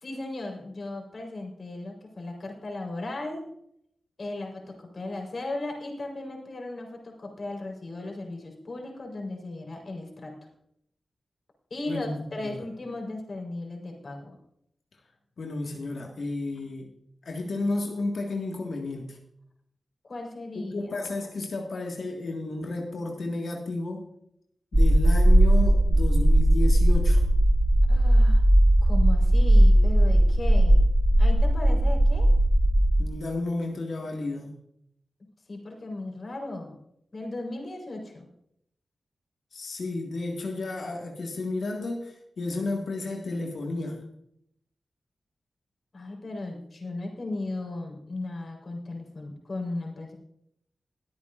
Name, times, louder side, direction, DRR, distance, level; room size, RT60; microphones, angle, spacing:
voice 1, 0.0-3.5 4.2-10.3 11.7-14.4 20.0-20.9 27.9-28.4 28.8-30.8 31.2-32.3 35.5-36.8 37.1-38.3 45.9-50.2, left 2 dB, 55° left, 1 dB, 4.1 m, -36 dB
voice 2, 11.9-12.6 15.4-16.9 17.3-19.2 20.6-24.1 24.7-27.3 33.0-34.5 39.5-44.0, left 2 dB, 75° left, 1 dB, 1.7 m, -32 dB
sound 1, 24.7-33.1, right 1 dB, 25° right, 0.8 m, -18 dB
22.0 x 8.5 x 2.5 m, 0.74 s
cardioid pair, 55°, 0 cm